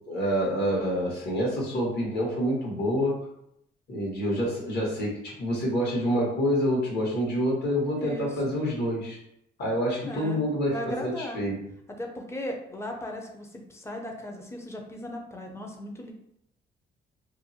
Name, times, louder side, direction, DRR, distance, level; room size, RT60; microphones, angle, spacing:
voice 1, 0.1-3.2 3.9-9.2 9.6-11.5, equal, 55° left, -4 dB, 1.2 m, -27 dB
voice 2, 7.9-8.6 10.0-11.4 12.0-16.1, left 1 dB, 15° left, 2 dB, 0.5 m, -37 dB
2.6 x 2.0 x 2.7 m, 0.77 s
cardioid pair, 90°, 20 cm